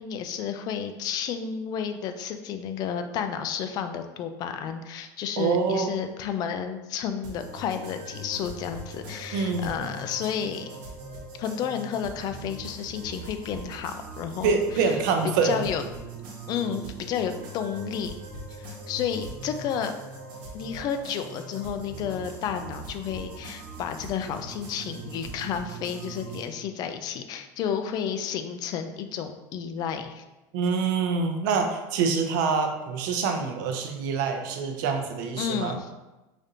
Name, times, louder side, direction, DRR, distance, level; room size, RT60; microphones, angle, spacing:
voice 1, 0.0-10.7 11.4-14.5 14.8-14.9 15.4-15.8 16.5-18.1 18.6-19.9 20.5-30.2 35.4-35.9, left 8 dB, 45° left, 8 dB, 0.3 m, -31 dB
voice 2, 5.4-5.9 9.3-9.7 14.4-15.6 30.5-35.7, right 5 dB, 85° right, 4 dB, 0.6 m, -25 dB
sound 1, 7.2-26.4, right 2 dB, 50° right, 1.0 m, -41 dB
5.0 x 2.5 x 2.7 m, 1.1 s
cardioid pair, 150°, 10 cm